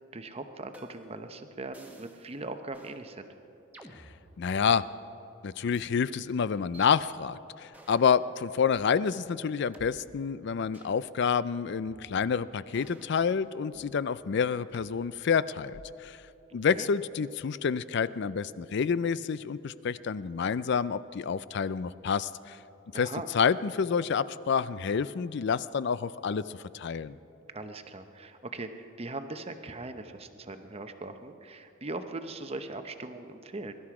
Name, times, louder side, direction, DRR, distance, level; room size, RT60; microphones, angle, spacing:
voice 1, 0.1-3.3 16.5-16.9 22.9-23.3 27.5-33.8, right 2 dB, 30° right, 8 dB, 0.8 m, -40 dB
sound 1, 0.7-1.2 1.7-2.3 2.7-3.0 3.7-4.9 5.7-5.9 6.7-6.9 7.7-8.2 8.7-8.8 9.7-9.9 10.7-11.0 11.7-12.3 12.7-14.0 14.7-14.9 15.7-16.1, right 1 dB, 10° right, 1.4 m, -53 dB
voice 2, 4.4-4.8 5.4-16.2 16.5-22.6 22.9-23.1 23.3-26.4 26.7-27.2, left 6 dB, 55° left, 17 dB, 0.4 m, -28 dB
22.5 x 12.0 x 4.9 m, 2.9 s
head